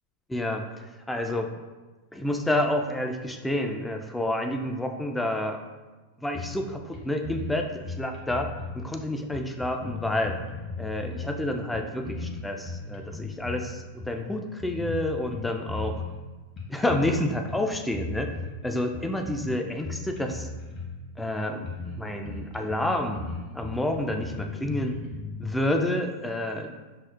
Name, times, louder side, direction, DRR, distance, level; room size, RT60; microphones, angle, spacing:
voice 1, 0.3-0.7 1.1-1.5 2.1-5.6 6.2-10.4 10.8-16.0 16.7-18.3 18.6-20.5 21.2-23.2 23.5-25.0 25.4-26.7, left 1 dB, 5° left, 4 dB, 0.4 m, -29 dB
sound 1, 6.3-6.7 6.9-7.0 7.2-8.9 9.3-11.4 11.7-13.7 14.0-14.2 14.6-16.2 16.6-17.2 17.5-18.5 18.9-21.0 21.4-21.5 21.6-22.0 22.2-25.5, left 3 dB, 35° left, 0.9 m, -36 dB
5.8 x 2.1 x 2.4 m, 1.2 s
figure-of-eight pair, 90°, 0 cm